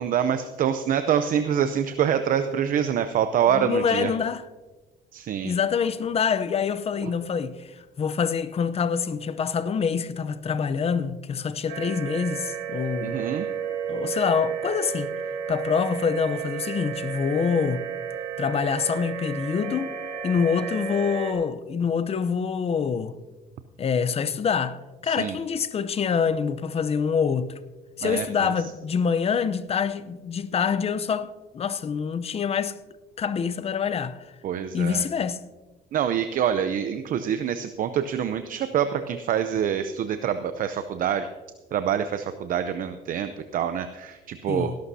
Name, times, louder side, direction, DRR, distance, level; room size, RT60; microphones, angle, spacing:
voice 1, 0.0-4.1 5.1-5.5 7.0-7.1 13.0-13.5 25.1-25.4 28.0-28.5 34.4-35.0 35.9-41.3 41.7-44.7, right 9 dB, 55° right, 0.6 m, -26 dB
voice 2, 3.5-4.4 5.4-13.3 13.9-15.1 15.5-17.8 18.4-19.9 20.2-23.2 23.8-27.5 28.0-32.8 33.2-34.2 34.7-35.4 44.5-44.8, left 6 dB, 35° left, 0.7 m, -26 dB
sound 1, 11.7-21.3, right 7 dB, 90° right, 2.1 m, -32 dB
18.5 x 11.5 x 2.8 m
cardioid pair, 110°, 17 cm